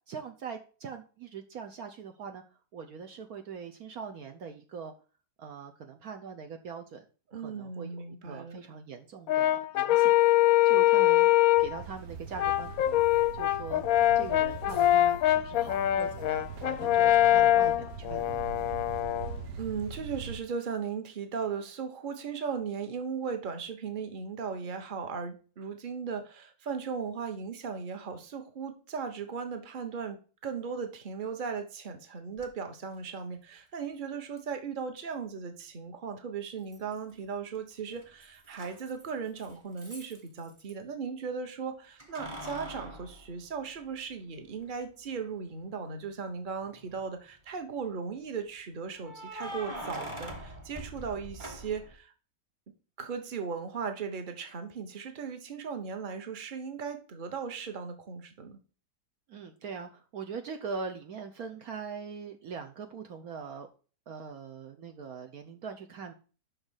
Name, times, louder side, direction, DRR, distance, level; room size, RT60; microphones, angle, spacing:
voice 1, 0.1-2.4 2.7-4.9 5.4-7.0 7.3-10.2 10.6-11.3 11.6-13.0 13.3-13.8 14.1-18.5 59.3-63.7 64.1-66.1, right 5 dB, 65° right, 5 dB, 1.2 m, -42 dB
voice 2, 7.3-8.6 19.6-52.1 53.0-58.6, right 6 dB, 35° right, 7 dB, 1.1 m, -37 dB
Brass instrument, 9.3-11.8 12.4-19.3, left 14 dB, 70° left, 0.9 m, -24 dB
sound 1, 11.5-20.4, right 5 dB, 80° right, 1.5 m, -42 dB
Keys jangling, 32.4-32.5 34.4-34.5 36.7-37.3 37.5-40.7 42.0-44.1 44.6-44.7 46.5-47.0 49.0-52.0, equal, 20° right, 1.3 m, -43 dB
6.5 x 5.7 x 6.3 m, 0.37 s
omnidirectional pair, 1.8 m